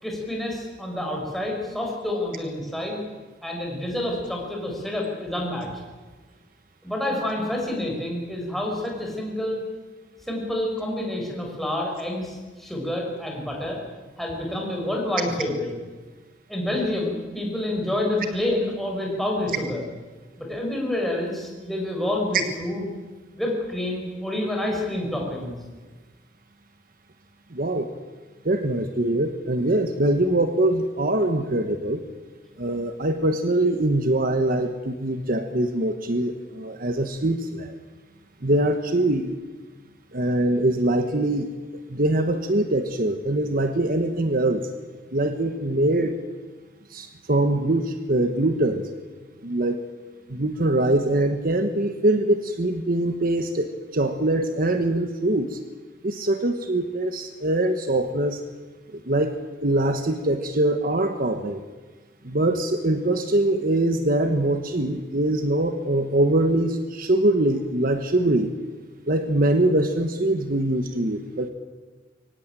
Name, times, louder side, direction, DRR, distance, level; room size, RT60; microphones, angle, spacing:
voice 1, 0.0-3.0 3.4-5.7 6.8-9.6 10.3-13.8 14.2-15.7 16.5-19.8 20.4-22.8 23.3-25.5, left 1 dB, ahead, -1 dB, 5.8 m, -28 dB
voice 2, 27.5-27.9 28.4-32.0 32.6-37.7 38.4-39.4 40.1-41.5 41.9-44.7 45.1-46.1 46.9-48.9 49.4-49.8 50.3-55.6 56.0-58.4 58.9-59.3 59.6-61.6 62.2-68.5 69.1-71.5, right 1 dB, 50° right, 7 dB, 1.3 m, -23 dB
23.5 x 17.0 x 9.1 m, 1.3 s
head